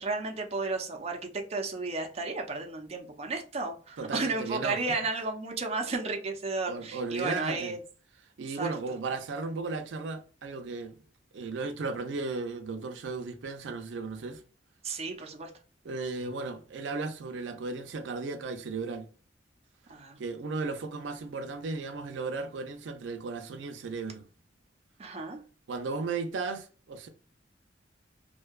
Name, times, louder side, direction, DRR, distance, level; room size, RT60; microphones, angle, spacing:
voice 1, 0.0-7.8 8.5-8.7 14.8-15.5 19.9-20.2 25.0-25.4, right 3 dB, 35° right, 0.5 m, -33 dB
voice 2, 4.0-4.8 6.7-7.7 8.4-10.9 11.3-14.4 15.8-19.1 20.2-24.2 25.7-27.1, right 3 dB, 85° right, 0.4 m, -35 dB
2.6 x 2.2 x 2.3 m
head